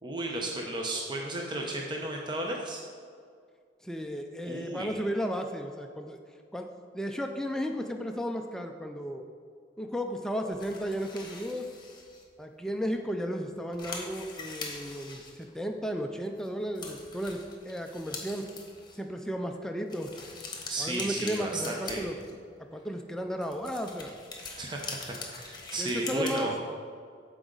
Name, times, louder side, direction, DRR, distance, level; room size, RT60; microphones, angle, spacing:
voice 1, 0.0-2.8 4.4-4.9 20.7-22.0 24.6-26.5, right 2 dB, 25° right, 0 dB, 0.8 m, -34 dB
voice 2, 3.8-6.2 6.5-6.7 6.9-9.2 9.8-11.7 12.4-18.5 19.0-20.1 20.8-22.2 22.7-24.2 25.8-26.5, equal, 5° left, 4 dB, 0.4 m, -34 dB
sound 1, 10.5-12.2 12.8-12.9 13.2-13.3 13.6-15.9 16.4-16.5 16.7-19.0 19.9-22.5 23.3-26.4, left 4 dB, 25° left, 1.3 m, -43 dB
14.0 x 4.9 x 3.9 m, 2.1 s
head